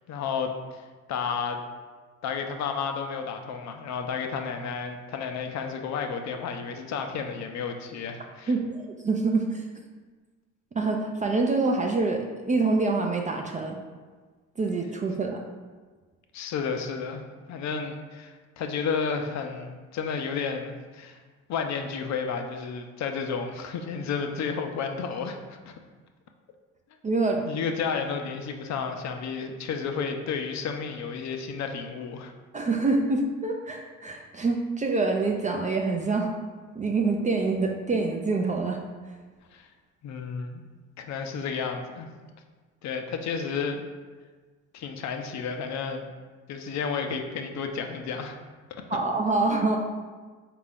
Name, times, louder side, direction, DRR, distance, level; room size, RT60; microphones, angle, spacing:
voice 1, 0.1-1.6 2.2-8.5 16.3-17.2 17.5-21.2 21.5-25.4 25.7-25.8 27.5-32.3 39.5-39.7 40.0-40.6 41.0-42.1 42.8-43.8 44.7-46.0 46.5-48.4, left 5 dB, 45° left, 5 dB, 0.5 m, -32 dB
voice 2, 8.5-9.6 10.7-13.8 14.6-15.4 27.0-27.4 32.5-36.3 36.8-38.8 48.9-49.8, right 3 dB, 20° right, 2 dB, 0.4 m, -26 dB
4.3 x 2.5 x 3.4 m, 1.4 s
hypercardioid pair, 60°, 38 cm